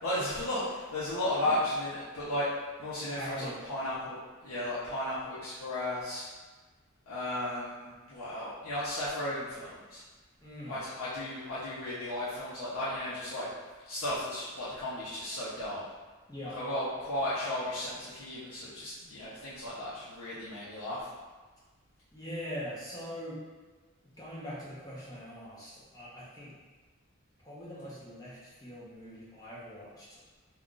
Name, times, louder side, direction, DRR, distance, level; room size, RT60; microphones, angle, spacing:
voice 1, 0.0-2.5 2.8-6.3 7.1-10.0 10.7-13.5 13.9-15.8 16.5-21.1, left 1 dB, 90° left, -10 dB, 0.7 m, -34 dB
voice 2, 3.1-3.6 10.4-10.8 16.3-16.6 22.1-23.4 24.2-26.5 27.4-30.2, equal, 15° left, -7 dB, 0.7 m, -42 dB
2.4 x 2.3 x 3.7 m, 1.3 s
head